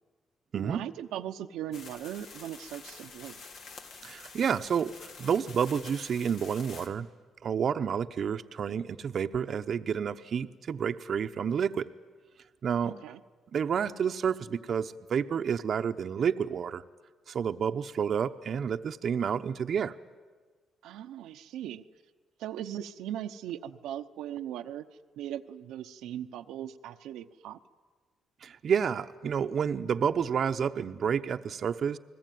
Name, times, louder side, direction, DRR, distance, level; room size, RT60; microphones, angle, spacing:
voice 1, 0.5-3.4 12.8-13.2 20.8-21.8 22.4-24.9 25.2-27.6, right 11 dB, 90° right, 6 dB, 0.8 m, -39 dB
sound 1, 1.7-6.9, left 4 dB, 75° left, 2.7 m, -48 dB
voice 2, 4.0-7.1 7.4-11.9 12.6-12.9 13.5-16.8 17.3-19.9 28.4-32.0, right 7 dB, 55° right, 9 dB, 0.8 m, -30 dB
30.0 x 20.5 x 9.3 m, 1.4 s
cardioid pair, 90°, 0 cm